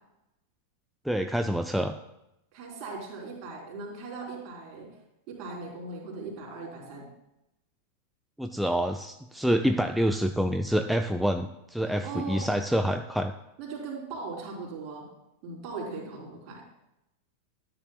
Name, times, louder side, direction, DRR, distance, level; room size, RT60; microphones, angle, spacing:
voice 1, 1.1-1.9 8.4-13.3, equal, ahead, 6 dB, 0.4 m, -27 dB
voice 2, 2.5-4.9 5.3-7.1 11.8-12.5 13.6-15.1 15.4-16.6, right 4 dB, 40° right, -1 dB, 3.6 m, -39 dB
13.0 x 9.3 x 2.3 m, 0.86 s
figure-of-eight pair, 90°, 0 cm